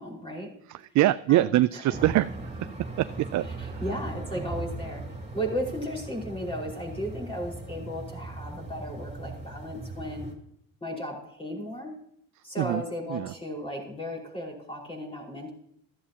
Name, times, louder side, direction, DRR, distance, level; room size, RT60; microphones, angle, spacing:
voice 1, 0.0-0.5 1.3-2.0 3.5-5.0 5.3-10.3 10.8-11.9 12.4-15.5, equal, 15° left, -2 dB, 5.2 m, -35 dB
voice 2, 0.7-2.3 2.6-2.7 3.0-3.7 12.6-12.8 13.1-13.3, right 15 dB, 55° right, 13 dB, 0.5 m, -24 dB
sound 1, 1.9-10.3, right 2 dB, 20° right, 3.7 m, -38 dB
14.5 x 13.0 x 2.9 m, 0.70 s
cardioid pair, 110°, 36 cm